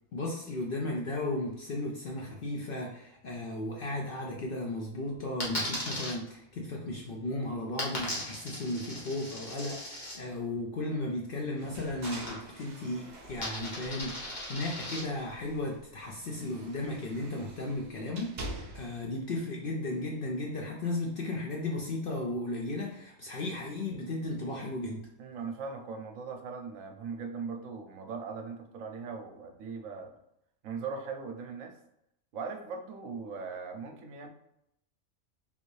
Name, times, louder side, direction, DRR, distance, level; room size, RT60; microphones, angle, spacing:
voice 1, 0.1-25.0, left 2 dB, 65° left, -1 dB, 0.5 m, -35 dB
Coin (dropping), 5.4-6.1 7.8-10.2 12.0-12.7 12.9-15.0, left 1 dB, 35° left, 1.1 m, -38 dB
sound 1, 11.6-14.8 15.1-19.1, right 1 dB, 50° right, 0.5 m, -46 dB
voice 2, 25.2-30.2 30.6-31.8 32.3-34.3, right 5 dB, 80° right, 4 dB, 0.9 m, -39 dB
3.4 x 2.6 x 3.1 m, 0.81 s
omnidirectional pair, 1.4 m